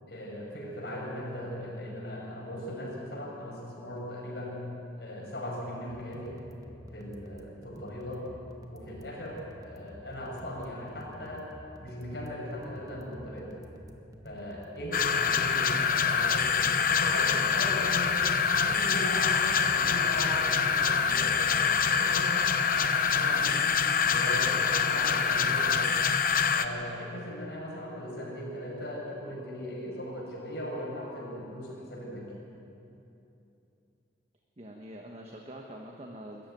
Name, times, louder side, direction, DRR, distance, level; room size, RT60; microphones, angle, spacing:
voice 1, 0.1-4.7 5.0-6.4 6.9-8.3 8.7-11.5 11.8-13.5 14.2-23.6 24.0-26.0 26.5-32.3, equal, 70° left, -3 dB, 6.4 m, -38 dB
sound 1, 5.9-21.9, equal, 20° right, 1.3 m, -50 dB
sound 2, 14.9-26.6, left 6 dB, 50° left, 0.9 m, -25 dB
voice 2, 34.6-36.5, right 1 dB, 35° right, 1 dB, 1.3 m, -45 dB
22.0 x 14.0 x 9.3 m, 2.8 s
head